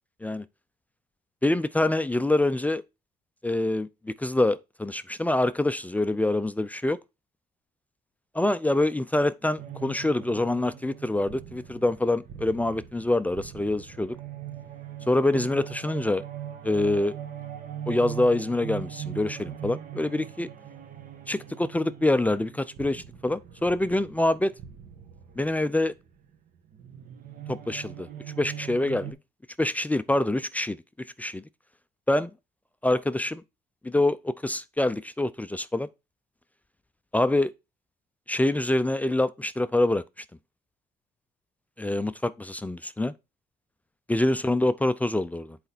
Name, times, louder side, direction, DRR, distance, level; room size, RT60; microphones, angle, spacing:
voice 1, 1.4-2.8 3.4-7.0 8.3-14.2 15.1-16.2 16.6-17.1 17.9-20.5 21.3-24.5 25.4-25.9 27.5-28.1 28.4-29.2 29.6-30.8 31.2-31.4 32.1-32.3 32.8-33.4 33.8-35.9 37.1-37.5 38.3-40.0 41.8-43.1 44.1-45.6, left 2 dB, 10° left, 0.4 m, -25 dB
sound 1, 9.6-29.1, right 9 dB, 55° right, 1.2 m, -41 dB
8.0 x 4.3 x 4.2 m
cardioid pair, 110°, 17 cm